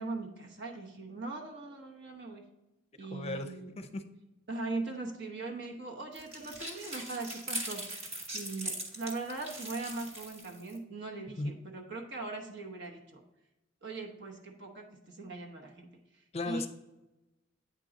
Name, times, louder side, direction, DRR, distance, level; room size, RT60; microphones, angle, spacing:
voice 1, 0.0-2.4 3.0-3.8 4.5-7.8 8.3-13.2 13.8-15.9 16.1-16.7, right 3 dB, 60° right, 1 dB, 1.0 m, -40 dB
voice 2, 3.1-3.5 3.8-4.0 11.4-11.5 16.3-16.7, left 2 dB, 30° left, 8 dB, 0.5 m, -35 dB
sound 1, 6.1-10.8, right 1 dB, 35° right, 1.1 m, -40 dB
9.0 x 3.7 x 3.9 m, 0.98 s
head